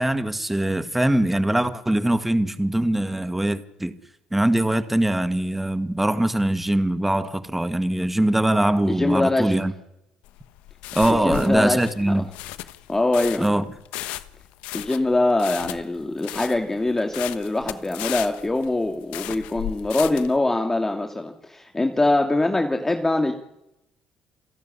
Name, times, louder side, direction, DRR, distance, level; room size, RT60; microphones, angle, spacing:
voice 1, 0.0-3.9 4.3-9.7 10.9-12.2 13.4-13.6, right 1 dB, 10° right, 2.0 m, -22 dB
voice 2, 8.9-9.5 11.1-11.8 12.9-13.5 14.7-23.3, left 2 dB, 20° left, 2.6 m, -23 dB
sound 1, 10.2-20.4, left 15 dB, 75° left, 1.1 m, -35 dB
28.5 x 12.0 x 10.0 m
hypercardioid pair, 60°, 2 cm